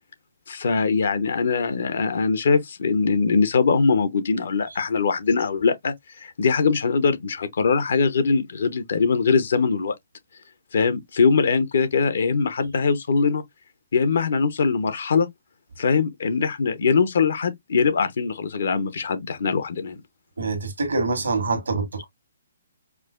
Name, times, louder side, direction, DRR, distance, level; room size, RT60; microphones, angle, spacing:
voice 1, 0.5-9.9 10.7-13.4 13.9-15.3 15.8-20.0, left 5 dB, 70° left, 0.7 m, -22 dB
voice 2, 20.4-22.0, right 3 dB, 85° right, 1.2 m, -25 dB
4.7 x 2.0 x 2.4 m
hypercardioid pair, 140°, 0 cm